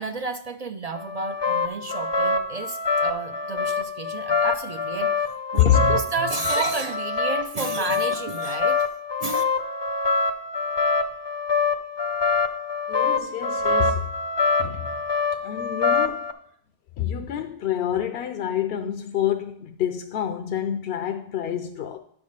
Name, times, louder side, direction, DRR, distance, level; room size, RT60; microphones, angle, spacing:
voice 1, 0.0-8.9 9.2-9.4, right 3 dB, 50° right, 0.4 m, -31 dB
sound 1, 1.0-16.3, left 4 dB, 35° left, 0.4 m, -25 dB
voice 2, 5.6-6.0 12.9-14.1 14.6-15.0 15.3-16.3 17.0-22.0, left 10 dB, 70° left, 0.8 m, -26 dB
10.5 x 3.6 x 6.5 m
omnidirectional pair, 1.1 m